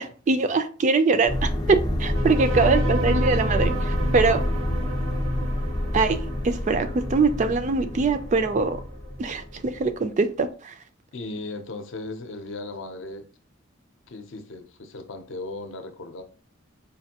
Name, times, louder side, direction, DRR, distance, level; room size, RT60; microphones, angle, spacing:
voice 1, 0.0-4.4 5.9-6.2 6.4-8.8 9.2-10.7, right 4 dB, 35° right, 0.3 m, -23 dB
sound 1, 1.3-9.8, left 1 dB, 20° left, 0.5 m, -27 dB
sound 2, 2.1-9.1, right 4 dB, 80° right, 0.6 m, -35 dB
voice 2, 2.5-3.0 11.1-13.3 14.1-16.2, left 2 dB, 65° left, 0.6 m, -36 dB
5.0 x 2.5 x 2.8 m
head